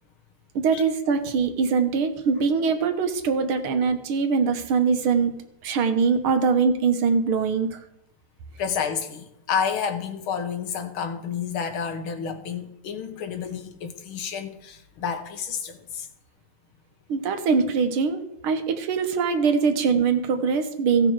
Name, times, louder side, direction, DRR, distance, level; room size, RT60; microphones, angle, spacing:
voice 1, 0.6-7.8 17.1-21.1, right 5 dB, 75° right, 7 dB, 1.9 m, -23 dB
voice 2, 8.6-16.1, left 7 dB, 75° left, 7 dB, 1.9 m, -30 dB
16.0 x 6.0 x 4.7 m, 0.83 s
omnidirectional pair, 2.4 m